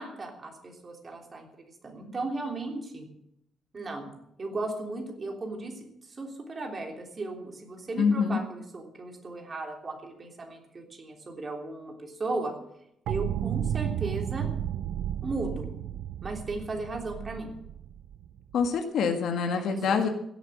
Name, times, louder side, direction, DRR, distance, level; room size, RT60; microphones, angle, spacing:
voice 1, 0.0-3.1 3.7-4.1 4.4-5.8 6.2-12.5 13.1-14.5 15.2-15.7 16.2-17.5 19.5-20.1, right 2 dB, 30° right, 2 dB, 3.3 m, -36 dB
voice 2, 8.0-8.4 18.5-20.1, left 5 dB, 70° left, 5 dB, 1.7 m, -25 dB
sound 1, 13.1-18.7, right 10 dB, 85° right, 0.6 m, -33 dB
16.5 x 8.0 x 8.6 m, 0.78 s
cardioid pair, 155°, 0 cm